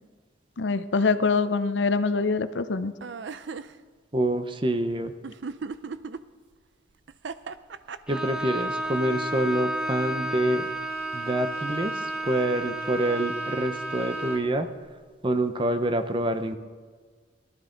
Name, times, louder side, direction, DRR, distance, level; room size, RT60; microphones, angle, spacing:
voice 1, 0.6-2.9, left 4 dB, 65° left, 12 dB, 0.6 m, -24 dB
sound 1, 3.0-3.7 5.2-6.2 7.1-8.4, right 5 dB, 70° right, 0.5 m, -36 dB
voice 2, 4.1-5.1 8.1-10.7 11.1-14.7 15.2-16.6, right 1 dB, 25° right, 8 dB, 0.7 m, -26 dB
Bowed string instrument, 8.1-14.6, right 1 dB, 5° right, 1.1 m, -32 dB
18.0 x 12.5 x 3.9 m, 1.5 s
head